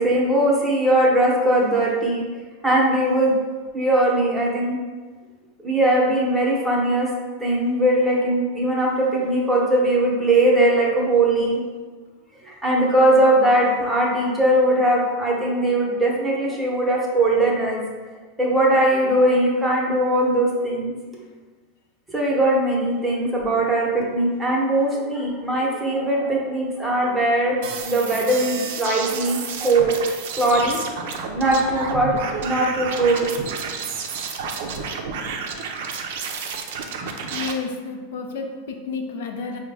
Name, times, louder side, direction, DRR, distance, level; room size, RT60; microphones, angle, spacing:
voice 1, 0.0-2.2 2.6-3.4 3.7-4.8 5.6-7.1 7.4-11.6 12.4-17.8 18.4-20.9 22.1-27.5 27.8-29.9 30.3-30.8 31.2-32.1 32.4-33.3, right 1 dB, 5° right, -4 dB, 0.8 m, -20 dB
sound 1, 27.6-37.5, right 5 dB, 70° right, 0.4 m, -30 dB
voice 2, 37.3-39.6, left 4 dB, 80° left, 3 dB, 0.4 m, -31 dB
4.7 x 2.1 x 3.4 m, 1.4 s
supercardioid pair, 135°, 0 cm